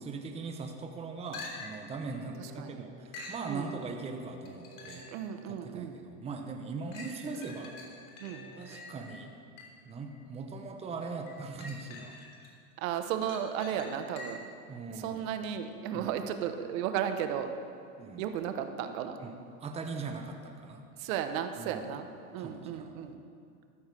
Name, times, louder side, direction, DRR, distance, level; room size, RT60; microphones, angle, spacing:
voice 1, 0.0-5.1 5.5-7.8 8.6-9.3 9.8-12.2 14.7-15.2 15.9-16.1 18.0-18.3 19.2-20.9 21.6-21.9 22.4-23.1, right 4 dB, 15° right, 4 dB, 0.8 m, -40 dB
sound 1, 1.3-1.9 3.1-3.5 4.5-5.2 5.8-5.9 6.9-9.9 11.3-12.5 12.9-14.6 18.4-18.5, left 3 dB, 85° left, 3.4 m, -46 dB
sound 2, 2.0-6.3 7.2-8.9, right 3 dB, 30° right, 3.6 m, -55 dB
voice 2, 2.4-2.8 3.5-3.7 5.1-6.0 8.2-8.5 12.8-14.4 14.9-17.5 18.2-19.2 21.0-22.1 22.3-23.2, right 9 dB, 65° right, 7 dB, 1.1 m, -34 dB
13.0 x 7.1 x 6.7 m, 2.3 s
supercardioid pair, 125°, 45 cm